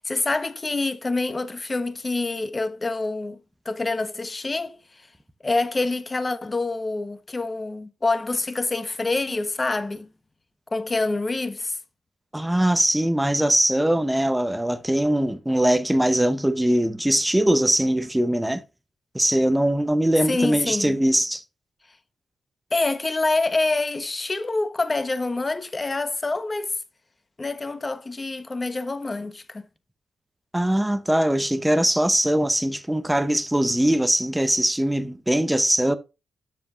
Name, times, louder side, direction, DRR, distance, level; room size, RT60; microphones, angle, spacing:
voice 1, 0.0-3.4 3.6-4.8 5.4-10.1 10.7-11.8 20.2-21.0 22.7-26.7 27.4-29.6, left 3 dB, 20° left, 1.1 m, -26 dB
voice 2, 12.3-18.6 19.1-21.4 30.5-35.9, right 1 dB, 5° right, 0.8 m, -21 dB
12.0 x 7.6 x 2.6 m
wide cardioid pair, 140°, 0 cm